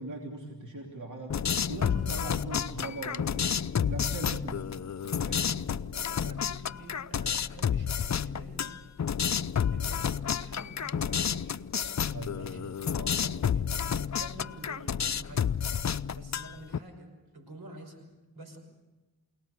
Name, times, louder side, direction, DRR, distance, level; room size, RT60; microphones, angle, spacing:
voice 1, 0.0-4.7 5.0-5.5 12.1-12.7, right 2 dB, 50° right, 1 dB, 3.1 m, -40 dB
sound 1, 1.3-16.8, left 8 dB, 45° left, 0.6 m, -30 dB
voice 2, 5.7-8.8 9.7-11.5 12.3-15.6 16.1-18.1 18.3-18.6, right 1 dB, 75° right, 6 dB, 5.8 m, -48 dB
28.5 x 18.5 x 6.7 m, 1.2 s
cardioid pair, 40°, 38 cm